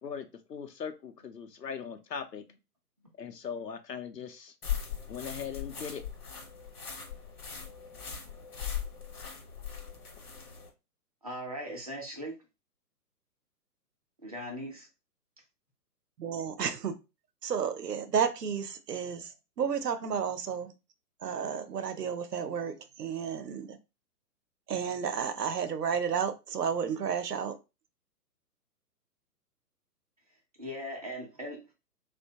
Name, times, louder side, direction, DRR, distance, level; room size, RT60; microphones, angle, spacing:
voice 1, 0.0-2.4 3.2-4.5 5.1-6.0, left 7 dB, 85° left, 7 dB, 0.6 m, -39 dB
sound 1, 4.6-10.7, left 8 dB, 65° left, 1.0 m, -39 dB
voice 2, 11.2-12.4 14.2-14.9 30.6-31.7, equal, 25° right, -1 dB, 0.4 m, -39 dB
voice 3, 16.2-17.0 17.4-20.7 21.2-23.8 24.7-27.6, right 7 dB, 75° right, 9 dB, 0.6 m, -32 dB
2.7 x 2.1 x 2.7 m, 0.27 s
figure-of-eight pair, 125°, 48 cm